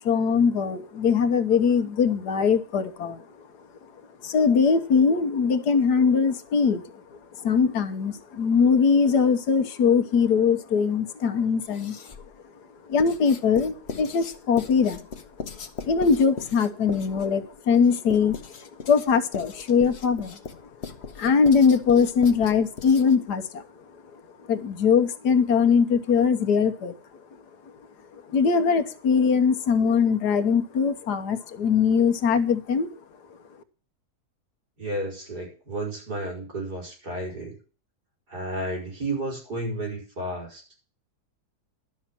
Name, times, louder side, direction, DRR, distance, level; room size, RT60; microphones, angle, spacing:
voice 1, 0.0-3.2 4.2-6.8 7.4-11.9 12.9-15.0 15.8-20.4 21.2-23.6 24.5-26.9 28.3-32.9, left 6 dB, 85° left, 7 dB, 1.6 m, -21 dB
Writing, 11.6-12.3 13.0-23.3, left 5 dB, 45° left, 1.2 m, -39 dB
voice 2, 34.8-37.6 38.3-40.6, right 1 dB, 80° right, -1 dB, 5.6 m, -32 dB
12.0 x 6.3 x 7.5 m, 0.37 s
omnidirectional pair, 1.7 m